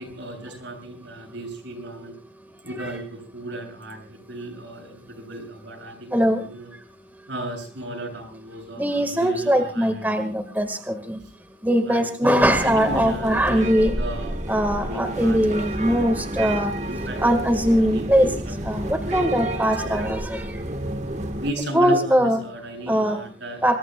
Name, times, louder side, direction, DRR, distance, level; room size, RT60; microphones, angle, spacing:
voice 1, 0.0-2.1 2.6-4.0 4.3-6.2 6.5-6.7 7.3-9.9 11.9-12.3 12.6-14.3 14.8-17.4 17.8-19.3 19.8-20.2 21.3-23.7, right 1 dB, 85° right, 3 dB, 7.4 m, -35 dB
voice 2, 6.1-6.4 8.8-11.2 11.6-13.9 14.5-16.7 17.2-18.3 18.6-20.5 21.7-22.4 22.9-23.2 23.6-23.8, equal, 10° right, 7 dB, 1.5 m, -21 dB
sound 1, 12.4-21.5, right 1 dB, 40° right, 1.3 m, -30 dB
27.0 x 21.5 x 2.2 m, 0.34 s
head